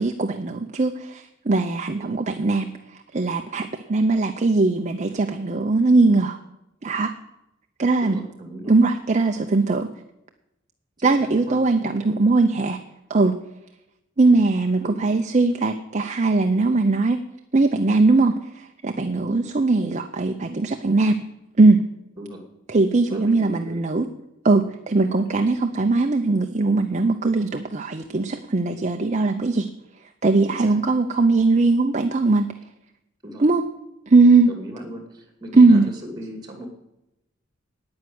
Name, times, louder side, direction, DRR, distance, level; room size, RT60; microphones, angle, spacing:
voice 1, 0.0-6.4 6.8-7.1 7.8-8.2 8.7-9.9 11.0-12.8 13.1-13.3 14.2-17.2 17.5-21.2 21.6-21.8 22.7-24.1 24.4-29.7 30.2-32.5 33.4-33.6 34.1-34.5 35.5-35.8, right 3 dB, 35° right, 6 dB, 0.6 m, -20 dB
voice 2, 8.0-8.7 11.0-12.2 14.8-15.1 19.3-19.5 22.2-22.4 23.1-23.8 25.1-25.2 30.4-30.8 33.2-33.4 34.4-36.7, equal, 20° right, 3 dB, 2.4 m, -38 dB
9.6 x 9.5 x 7.8 m, 0.90 s
head